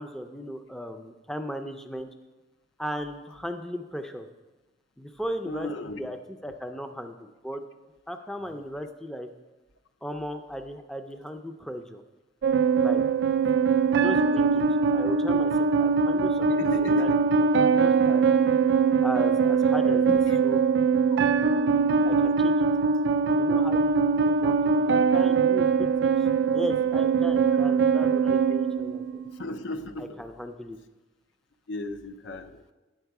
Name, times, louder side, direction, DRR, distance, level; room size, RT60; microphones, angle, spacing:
voice 1, 0.0-2.1 2.8-4.3 5.0-5.7 6.0-7.6 8.1-9.3 10.0-12.0 12.8-13.0 14.0-14.6 14.9-15.5 15.8-17.1 17.4-18.2 19.0-20.1 20.4-20.6 22.0-22.7 23.3-26.1 26.5-29.2 30.0-30.8, equal, 5° left, 6 dB, 0.4 m, -36 dB
voice 2, 5.4-6.1 16.5-17.2 20.3-20.4 29.3-30.2 31.7-32.7, left 2 dB, 80° left, 9 dB, 0.6 m, -34 dB
sound 1, 12.4-29.4, right 5 dB, 65° right, 0.3 m, -22 dB
9.0 x 6.0 x 4.7 m, 1.1 s
head